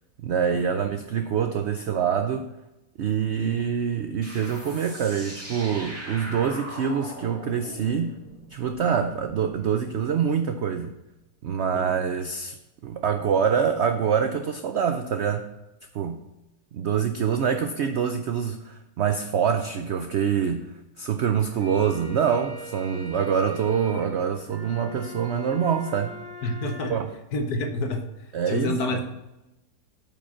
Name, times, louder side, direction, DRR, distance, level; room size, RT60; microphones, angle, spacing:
voice 1, 0.2-2.5 3.0-8.2 8.5-10.9 11.4-12.6 12.8-15.5 15.9-16.2 16.7-26.2 26.9-27.1 28.3-29.0, right 7 dB, 75° right, 7 dB, 0.6 m, -25 dB
sound 1, 4.2-9.5, right 1 dB, 10° right, 2.1 m, -40 dB
sound 2, 21.4-27.0, equal, 35° right, 3.5 m, -42 dB
voice 2, 26.4-26.9 27.3-29.1, left 2 dB, 65° left, 5 dB, 1.5 m, -29 dB
8.8 x 5.1 x 5.8 m, 0.95 s
omnidirectional pair, 1.8 m